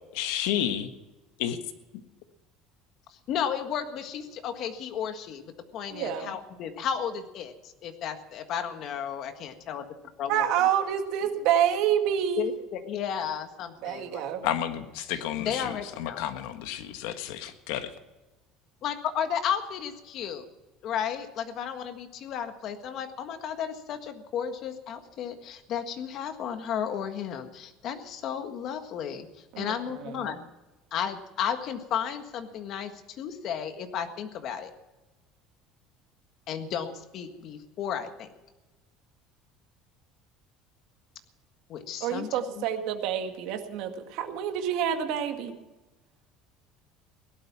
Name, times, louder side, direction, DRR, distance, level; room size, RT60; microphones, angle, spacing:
voice 1, 0.1-0.9 1.4-1.6 14.4-15.7 16.0-17.9, left 11 dB, 85° left, 8 dB, 1.6 m, -31 dB
voice 2, 3.1-9.9 10.2-10.4 12.4-14.5 15.1-16.3 18.8-20.4 20.8-30.4 30.9-34.7 36.5-38.3 41.7-42.7, left 8 dB, 45° left, 7 dB, 1.6 m, -33 dB
voice 3, 5.9-6.3 10.3-12.5 13.8-14.5 29.5-30.4 42.0-45.5, right 9 dB, 60° right, 5 dB, 2.0 m, -28 dB
17.5 x 12.0 x 6.1 m, 1.1 s
cardioid pair, 170°, 0 cm